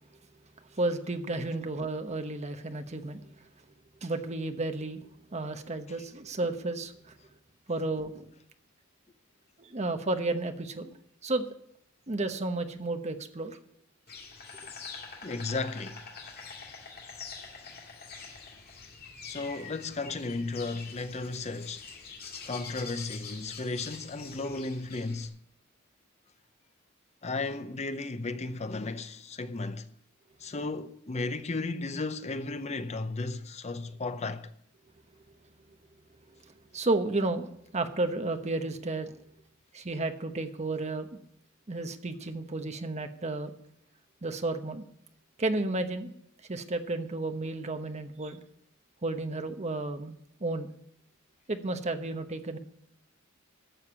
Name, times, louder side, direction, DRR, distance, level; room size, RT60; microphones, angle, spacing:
voice 1, 0.8-3.2 4.0-5.0 5.3-7.1 7.7-8.3 9.6-10.9 11.2-11.5 12.1-13.5 36.4-37.5 37.7-39.1 39.7-41.2 41.7-43.5 44.2-44.8 45.4-46.1 46.5-48.4 49.0-50.1 50.4-50.7 51.5-52.6, right 2 dB, 35° right, 1.0 m, -32 dB
Insect, 14.1-25.3, left 5 dB, 50° left, 2.3 m, -45 dB
voice 2, 15.2-16.0 19.2-21.8 22.4-25.4 27.2-29.9 30.4-34.5, left 3 dB, 35° left, 0.7 m, -34 dB
12.0 x 6.6 x 8.7 m
head